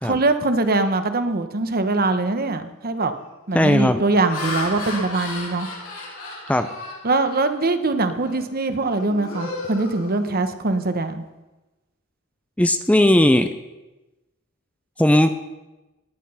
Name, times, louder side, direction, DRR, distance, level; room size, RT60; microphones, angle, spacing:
voice 1, 0.0-3.1 3.5-5.7 7.0-11.2, right 2 dB, 45° right, 9 dB, 1.1 m, -22 dB
Laughter, 2.2-2.4 3.0-3.3 3.9-7.7 8.2-8.4 8.8-10.7, left 2 dB, 85° left, 6.1 m, -34 dB
voice 2, 3.5-4.0 6.5-6.7 12.6-13.5 15.0-15.3, left 1 dB, 5° left, 9 dB, 0.6 m, -17 dB
17.5 x 10.0 x 5.6 m, 1.1 s
head